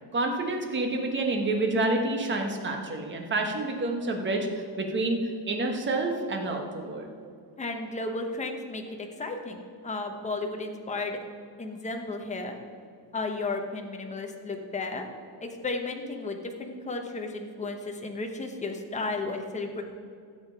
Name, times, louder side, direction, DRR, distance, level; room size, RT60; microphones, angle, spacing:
voice 1, 0.1-7.1, right 2 dB, 25° right, 3 dB, 1.3 m, -28 dB
voice 2, 7.6-8.8 9.2-11.2 11.6-12.6 13.1-15.0 15.4-19.8, left 3 dB, 15° left, 3 dB, 1.0 m, -33 dB
12.5 x 7.9 x 5.6 m, 2.3 s
cardioid pair, 170°, 44 cm